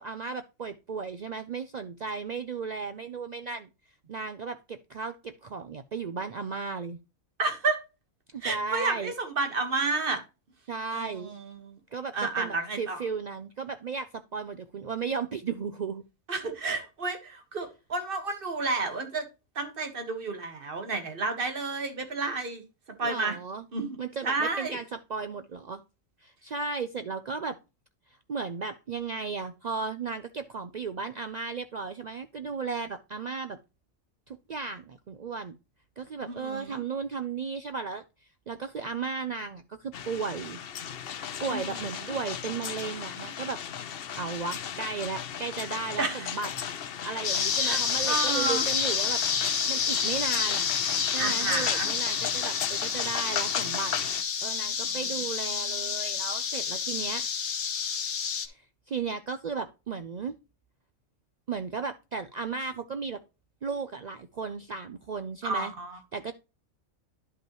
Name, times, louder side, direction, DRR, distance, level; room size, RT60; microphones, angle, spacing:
voice 1, 0.0-3.7 4.1-7.0 8.3-9.1 10.7-11.3 11.9-16.0 23.0-23.6 24.0-25.8 26.2-27.6 28.3-33.6 34.3-35.6 36.0-38.0 38.5-40.6 41.4-43.6 44.2-46.5 47.0-49.2 49.7-50.6 51.1-53.9 54.4-57.3 58.4-60.3 61.5-63.2 63.6-65.7 66.1-66.3, right 5 dB, 75° right, 0.4 m, -35 dB
voice 2, 7.4-7.8 8.4-10.2 10.9-11.8 12.1-13.0 16.3-19.2 19.5-22.6 23.0-23.4 23.7-24.0 24.2-24.8 36.2-36.8 41.5-42.1 46.0-46.3 47.6-48.7 51.2-51.9 54.8-55.0 65.4-66.0, right 3 dB, 45° right, 1.7 m, -31 dB
sound 1, 39.9-54.2, left 8 dB, 55° left, 0.7 m, -36 dB
sound 2, 47.2-58.5, left 6 dB, 75° left, 1.4 m, -29 dB
11.0 x 5.3 x 3.0 m
omnidirectional pair, 1.4 m